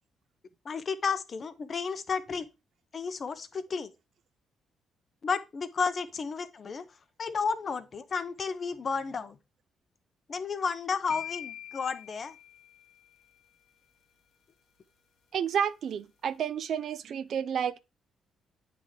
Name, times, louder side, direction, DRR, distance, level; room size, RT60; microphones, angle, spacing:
voice 1, 0.6-2.5 2.9-3.9 5.2-6.9 7.2-9.4 10.3-12.3, left 5 dB, 40° left, 0.6 m, -32 dB
sound 1, 11.1-13.2, left 11 dB, 80° left, 0.9 m, -43 dB
voice 2, 15.3-17.8, right 8 dB, 65° right, 0.4 m, -30 dB
8.5 x 3.4 x 3.5 m
cardioid pair, 90°, 0 cm